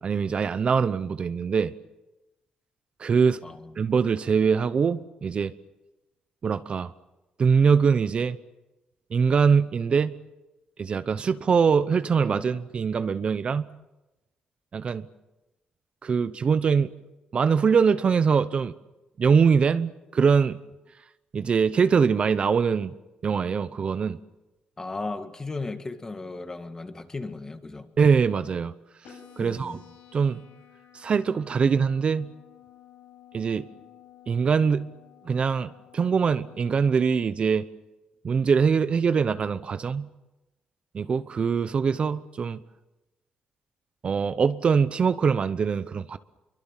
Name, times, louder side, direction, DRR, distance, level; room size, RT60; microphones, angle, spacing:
voice 1, 0.0-1.7 3.0-3.4 3.8-5.5 6.4-6.9 7.4-8.4 9.1-10.1 10.8-13.6 14.7-15.1 16.0-16.9 17.3-18.7 19.2-20.6 21.3-22.9 23.2-24.2 28.0-28.7 29.4-29.8 30.1-30.4 30.9-32.3 33.3-33.7 34.3-34.9 35.2-37.7 38.2-40.1 40.9-42.6 44.0-46.2, right 6 dB, 40° right, 0.8 m, -23 dB
voice 2, 3.4-3.7 24.8-27.9 29.4-29.8, left 3 dB, 20° left, 2.0 m, -36 dB
sound 1, 29.0-37.1, left 10 dB, 80° left, 7.4 m, -53 dB
27.0 x 23.5 x 7.4 m
cardioid pair, 125°, 3 cm